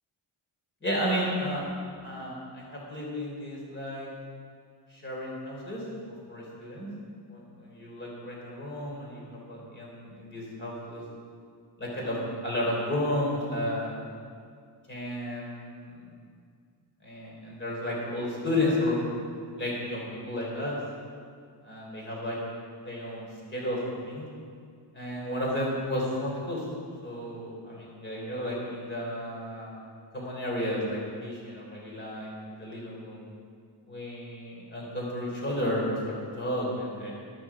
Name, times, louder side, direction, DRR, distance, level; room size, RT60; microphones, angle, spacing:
voice 1, 0.8-1.7 2.0-4.1 4.9-5.8 6.3-6.9 7.3-11.0 11.8-12.2 12.4-14.0 14.9-16.0 17.0-19.0 19.5-20.8 21.6-22.4 22.8-24.2 24.9-26.6 27.0-29.8 30.1-33.3 33.9-37.1, left 1 dB, 25° left, -3 dB, 3.6 m, -32 dB
13.5 x 12.5 x 4.9 m, 2.1 s
wide cardioid pair, 180°, 48 cm